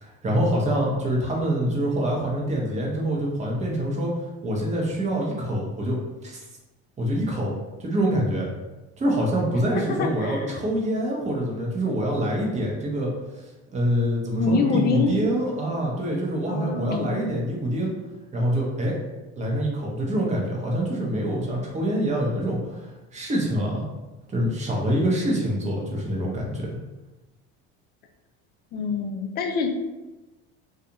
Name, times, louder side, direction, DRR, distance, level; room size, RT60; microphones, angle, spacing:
voice 1, 0.0-4.1 4.4-6.4 7.0-7.5 7.8-8.5 9.0-13.1 13.7-17.9 18.3-19.0 19.4-23.9 24.3-26.7, right 1 dB, 25° right, -2 dB, 0.7 m, -25 dB
voice 2, 10.0-10.6 14.4-15.2 16.5-17.3 28.7-29.7, left 4 dB, 35° left, 4 dB, 0.4 m, -25 dB
2.4 x 2.4 x 2.8 m, 1.1 s
cardioid pair, 125°, 30 cm